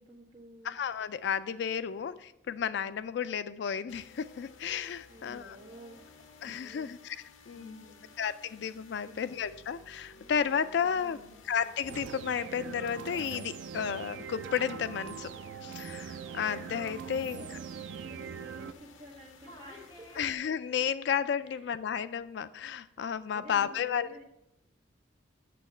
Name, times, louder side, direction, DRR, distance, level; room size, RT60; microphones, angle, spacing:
voice 1, 0.0-0.8 5.1-6.0 6.4-6.9 7.5-8.1 9.0-9.2 10.9-11.4 17.1-17.6 17.9-20.2 21.4-21.7 23.3-24.2, right 1 dB, 25° right, -2 dB, 1.6 m, -52 dB
voice 2, 0.6-5.6 6.4-7.2 7.5-7.8 8.2-11.2 11.5-15.3 15.6-17.4 20.2-24.2, left 7 dB, 60° left, 14 dB, 0.3 m, -32 dB
sound 1, 3.9-20.3, left 4 dB, 85° left, 0.8 m, -56 dB
Singing, 10.1-19.1 19.4-20.8, left 1 dB, 25° left, 2.2 m, -57 dB
sound 2, 11.9-18.7, right 7 dB, 70° right, 0.4 m, -42 dB
8.5 x 7.1 x 4.3 m, 0.82 s
head